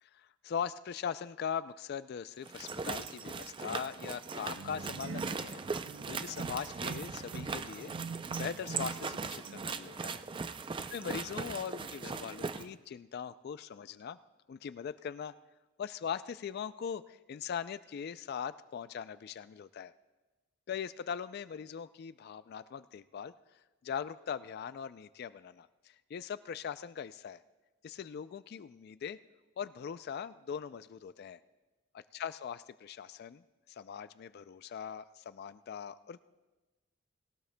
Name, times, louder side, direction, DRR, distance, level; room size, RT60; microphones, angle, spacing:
voice 1, 0.2-5.6 5.9-7.9 8.4-10.2 10.9-14.2 14.5-15.3 15.8-19.9 20.7-23.3 23.8-27.4 27.8-29.2 29.6-31.4 31.9-36.2, left 7 dB, 55° left, 14 dB, 0.3 m, -41 dB
sound 1, 2.4-12.7, right 4 dB, 25° right, 0.4 m, -39 dB
sound 2, 4.6-9.1 9.4-9.7, right 5 dB, 80° right, 0.6 m, -44 dB
20.0 x 17.5 x 2.2 m, 1.2 s
head